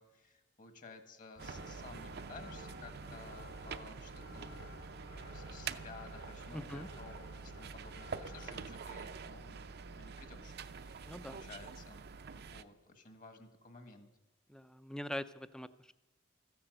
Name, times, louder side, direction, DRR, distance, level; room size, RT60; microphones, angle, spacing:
voice 1, 0.0-4.5 5.3-12.0 12.3-14.1, left 4 dB, 45° left, 7 dB, 1.6 m, -54 dB
sound 1, 1.4-8.8, left 1 dB, 80° left, 4.3 m, -54 dB
sound 2, 1.4-12.6, right 5 dB, 55° right, 0.6 m, -46 dB
voice 2, 6.5-6.9 11.1-11.4 14.5-15.9, left 1 dB, 5° left, 13 dB, 0.4 m, -43 dB
14.0 x 10.0 x 7.8 m, 1.1 s
head